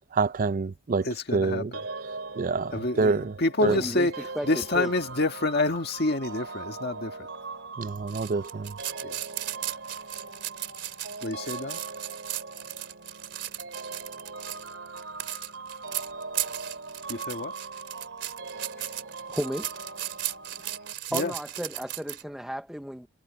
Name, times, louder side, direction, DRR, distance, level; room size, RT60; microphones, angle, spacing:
voice 1, 0.1-1.1 1.3-1.7 2.4-3.3 3.6-3.8 7.8-8.7, right 4 dB, 45° right, 0.5 m, -26 dB
voice 2, 1.0-1.8 2.7-7.3 9.0-9.2 11.2-11.8 17.1-17.5 18.8-18.9 21.1-21.3, left 2 dB, 60° left, 1.7 m, -28 dB
sound 1, 1.7-20.9, right 3 dB, 85° right, 2.6 m, -41 dB
voice 3, 3.7-4.1 4.4-4.9 19.3-19.7 21.1-23.1, equal, 5° right, 0.6 m, -33 dB
sound 2, 8.1-22.2, right 13 dB, 65° right, 3.4 m, -36 dB
head